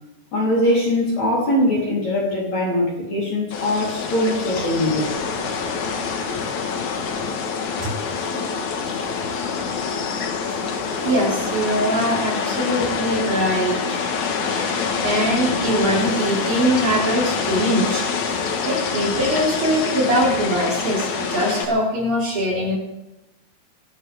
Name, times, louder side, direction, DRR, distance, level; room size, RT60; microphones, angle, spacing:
voice 1, 0.3-5.1, left 1 dB, 40° left, -4 dB, 4.4 m, -21 dB
sound 1, 3.5-21.6, left 5 dB, 65° left, 1.9 m, -26 dB
voice 2, 11.0-14.0 14.4-18.4 18.6-22.7, equal, 45° right, -4 dB, 5.7 m, -22 dB
25.5 x 12.0 x 3.5 m, 0.94 s
omnidirectional pair, 5.6 m